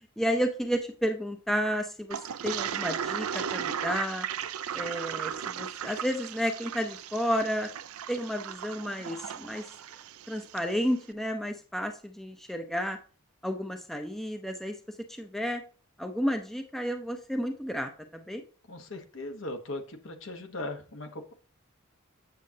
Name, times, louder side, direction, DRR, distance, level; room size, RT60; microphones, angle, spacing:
voice 1, 0.2-4.3 4.7-7.7 8.1-9.6 10.3-13.0 13.4-15.6 16.0-18.5, equal, ahead, 5 dB, 0.6 m, -31 dB
Toilet flush, 2.1-10.7, right 8 dB, 90° right, 0.5 m, -36 dB
voice 2, 18.7-21.3, left 2 dB, 65° left, 6 dB, 1.1 m, -39 dB
8.4 x 7.3 x 2.8 m, 0.37 s
head